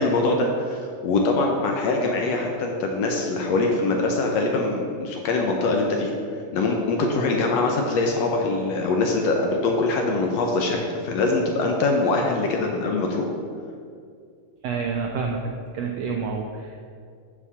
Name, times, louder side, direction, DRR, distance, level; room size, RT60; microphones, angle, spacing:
voice 1, 0.0-6.1 6.5-13.3, left 3 dB, 75° left, 1 dB, 1.6 m, -23 dB
voice 2, 14.6-16.9, right 5 dB, 80° right, 2 dB, 1.4 m, -28 dB
7.1 x 4.4 x 6.9 m, 2.3 s
omnidirectional pair, 3.5 m